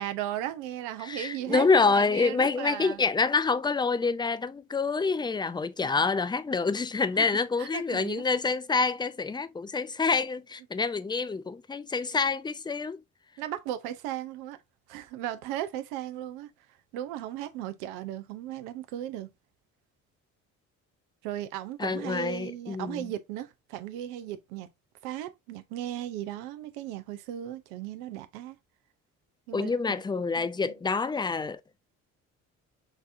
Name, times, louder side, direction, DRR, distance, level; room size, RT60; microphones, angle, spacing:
voice 1, 0.0-3.0 5.8-5.9 7.2-7.3 7.6-8.2 13.4-14.6 14.9-16.5 16.9-19.3 21.2-24.7 25.0-28.6 29.5-30.0 30.4-30.7, right 12 dB, 80° right, 0.7 m, -36 dB
voice 2, 1.0-13.0 21.8-23.1 29.5-31.8, left 4 dB, 10° left, 0.4 m, -27 dB
6.0 x 2.7 x 2.6 m
hypercardioid pair, 55°, 38 cm